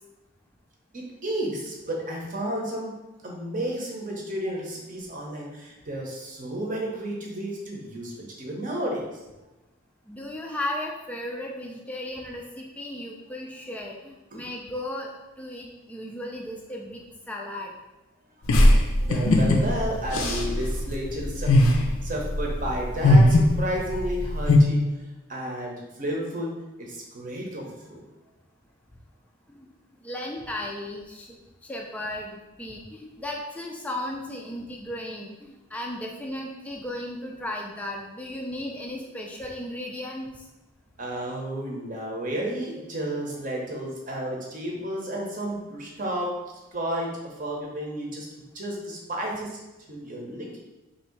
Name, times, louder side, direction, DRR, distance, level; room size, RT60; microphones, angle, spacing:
voice 1, 0.9-3.0 3.2-9.1 14.3-14.5 19.0-24.8 25.3-28.0 41.0-46.4 46.7-48.3 48.5-49.6 49.9-50.6, right 1 dB, 35° right, -1 dB, 0.7 m, -32 dB
voice 2, 10.1-17.7 29.5-29.7 30.0-31.3 31.6-40.4, left 1 dB, 5° left, 0 dB, 0.3 m, -35 dB
sound 1, 18.5-24.6, left 1 dB, 70° left, 0.5 m, -20 dB
3.0 x 2.7 x 4.4 m, 1.0 s
head